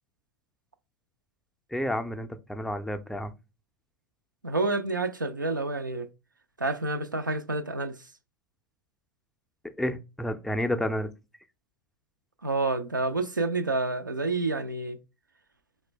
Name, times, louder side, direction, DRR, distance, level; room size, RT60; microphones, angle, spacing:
voice 1, 1.7-3.3 9.8-11.1, equal, 5° left, 0.4 m, -30 dB
voice 2, 4.4-6.1 6.6-8.0 12.4-15.0, right 3 dB, 90° right, 0.4 m, -28 dB
4.2 x 2.1 x 3.1 m
figure-of-eight pair, 80°, 10 cm